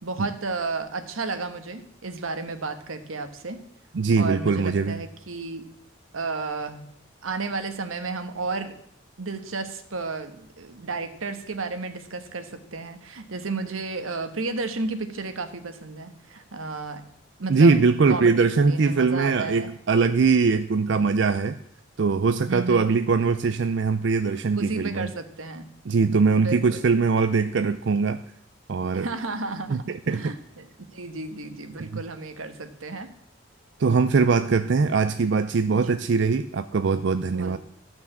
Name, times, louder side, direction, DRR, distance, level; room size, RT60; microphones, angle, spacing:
voice 1, 0.0-3.6 4.2-5.6 6.1-6.9 7.2-8.8 9.2-17.1 17.4-17.7 18.1-18.4 18.7-19.7 22.4-22.9 24.5-25.7 26.3-26.8 28.9-33.1 35.7-36.0 37.3-37.6, right 3 dB, 85° right, 9 dB, 1.2 m, -33 dB
voice 2, 3.9-5.0 17.5-21.6 22.0-25.1 25.9-28.2 28.7-29.1 29.7-30.3 31.9-32.0 33.8-37.6, right 4 dB, 60° right, 10 dB, 0.4 m, -21 dB
13.5 x 6.1 x 7.2 m, 0.70 s
head